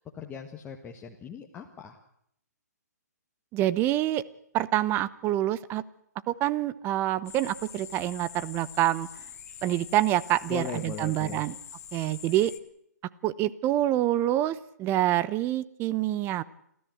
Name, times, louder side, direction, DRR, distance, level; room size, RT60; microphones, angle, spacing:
voice 1, 0.0-2.0 10.5-11.5, left 7 dB, 15° left, 1 dB, 1.7 m, -39 dB
voice 2, 3.5-4.2 4.5-5.8 6.3-9.1 9.6-11.5 11.9-12.5 13.2-16.4, right 14 dB, 25° right, 17 dB, 0.9 m, -26 dB
sound 1, 7.3-12.6, left 8 dB, 60° left, 1.9 m, -45 dB
29.0 x 13.5 x 7.9 m, 0.73 s
hypercardioid pair, 130°, 9 cm